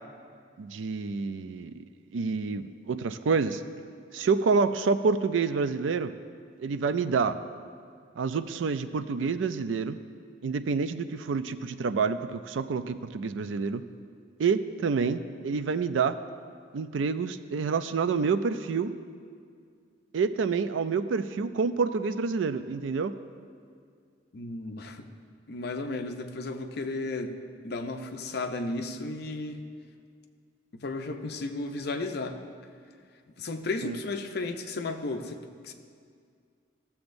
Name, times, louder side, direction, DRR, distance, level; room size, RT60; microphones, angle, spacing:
voice 1, 0.6-1.7 2.1-3.6 4.1-6.1 6.6-7.4 8.2-10.0 10.4-13.8 14.4-16.2 16.7-19.0 20.1-23.2 33.8-33.9, right 5 dB, 85° right, 11 dB, 0.4 m, -28 dB
voice 2, 24.3-25.1 25.5-29.6 30.7-32.4 33.4-35.7, left 2 dB, 60° left, 6 dB, 0.6 m, -34 dB
15.0 x 7.1 x 2.6 m, 2.2 s
head